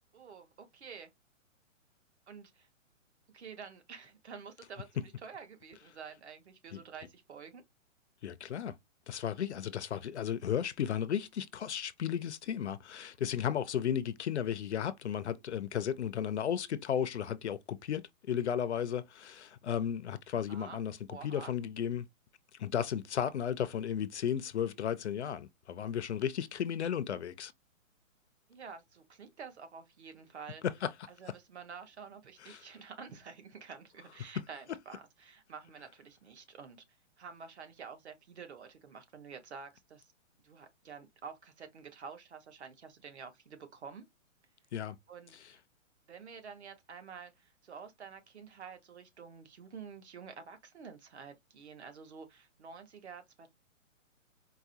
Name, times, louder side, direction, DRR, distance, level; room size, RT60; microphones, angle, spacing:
voice 1, 0.1-1.1 2.3-2.7 3.3-7.6 20.5-20.8 21.1-21.5 27.0-27.2 28.5-30.6 31.1-36.8 37.2-40.1 40.4-44.1 45.1-45.6 46.1-53.5, right 6 dB, 55° right, 1.2 m, -49 dB
voice 2, 8.2-8.8 9.1-21.0 21.2-22.1 22.6-27.5 30.6-30.9 32.4-32.6 44.7-45.0, left 9 dB, 60° left, 0.5 m, -34 dB
4.6 x 2.2 x 2.7 m
hypercardioid pair, 175°, 39 cm